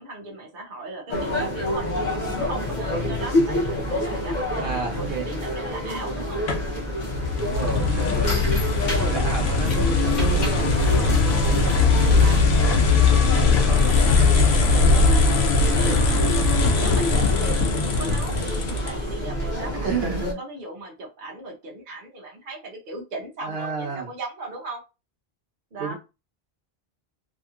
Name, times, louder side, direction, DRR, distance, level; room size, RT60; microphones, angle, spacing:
voice 1, 0.0-1.9 2.3-6.4 7.9-8.5 9.6-10.1 10.7-11.9 12.2-15.4 15.8-16.3 16.8-24.8 25.7-25.9, right 2 dB, 55° right, -1 dB, 1.0 m, -37 dB
sound 1, 1.1-20.3, equal, 50° left, 0.9 m, -28 dB
sound 2, 1.8-20.2, left 1 dB, 10° right, 0.8 m, -37 dB
voice 2, 4.5-5.3 7.4-8.4 8.8-10.5 11.1-11.7 12.6-12.9 19.8-20.4 23.4-24.1 25.8-25.9, right 4 dB, 75° right, -1 dB, 1.1 m, -31 dB
sound 3, 6.5-19.2, left 4 dB, 85° left, 0.9 m, -20 dB
2.8 x 2.8 x 2.4 m, 0.28 s
omnidirectional pair, 1.0 m